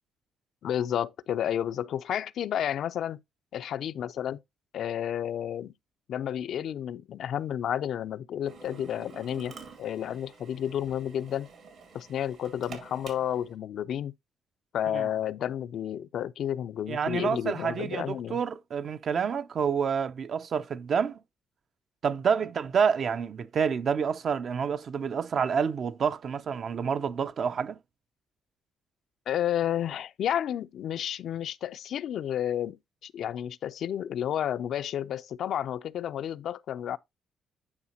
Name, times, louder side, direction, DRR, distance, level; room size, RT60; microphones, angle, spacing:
voice 1, 0.6-3.2 3.5-4.4 4.7-5.7 6.1-11.5 11.9-14.1 14.7-18.4 29.3-32.8 33.0-37.0, left 10 dB, 70° left, 0.3 m, -31 dB
Drill, 8.5-13.5, right 5 dB, 70° right, 2.2 m, -48 dB
voice 2, 16.9-21.2 22.0-27.8, right 6 dB, 55° right, 0.4 m, -28 dB
9.6 x 4.9 x 2.8 m
cardioid pair, 90°, 0 cm